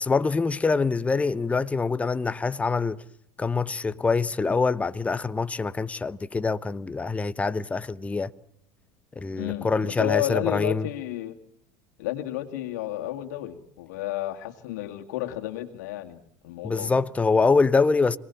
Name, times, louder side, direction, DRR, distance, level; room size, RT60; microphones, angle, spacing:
voice 1, 0.0-3.0 3.4-8.3 9.2-10.9 16.6-18.2, left 4 dB, 15° left, 0.9 m, -25 dB
voice 2, 9.4-11.4 12.0-16.2 16.4-17.0, left 14 dB, 80° left, 2.5 m, -31 dB
26.5 x 19.5 x 7.2 m
supercardioid pair, 105°, 9 cm